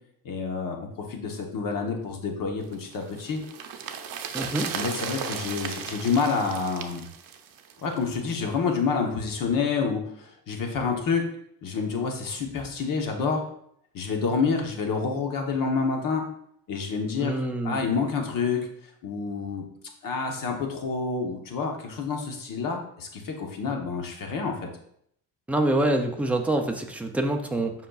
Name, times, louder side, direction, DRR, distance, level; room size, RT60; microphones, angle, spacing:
voice 1, 0.2-3.4 4.7-7.0 7.8-11.2 11.6-13.4 13.9-16.2 16.7-18.6 19.0-19.7 20.0-24.7, left 5 dB, 55° left, 2 dB, 1.0 m, -28 dB
sound 1, 2.7-8.1 8.4-8.5, right 7 dB, 60° right, 0.7 m, -36 dB
voice 2, 4.3-4.7 17.2-17.8 25.5-27.7, right 1 dB, 5° right, 3 dB, 0.4 m, -26 dB
7.8 x 5.6 x 2.3 m, 0.69 s
cardioid pair, 180°, 39 cm